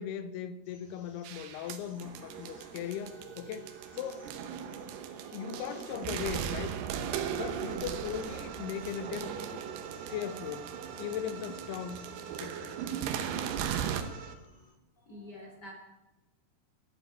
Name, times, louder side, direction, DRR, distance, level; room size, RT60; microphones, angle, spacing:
voice 1, 0.0-4.3 5.3-6.8 7.3-9.6 10.0-10.7 11.0-12.1 12.4-12.8, left 9 dB, 85° left, 2.8 m, -38 dB
sound 1, 0.6-14.7, equal, ahead, 2.5 m, -59 dB
sound 2, 1.3-14.0, right 9 dB, 90° right, 3.1 m, -38 dB
sound 3, 7.3-14.4, right 7 dB, 65° right, 2.1 m, -46 dB
voice 2, 15.0-15.7, left 1 dB, 30° left, 2.6 m, -47 dB
13.5 x 7.4 x 8.6 m
omnidirectional pair, 4.6 m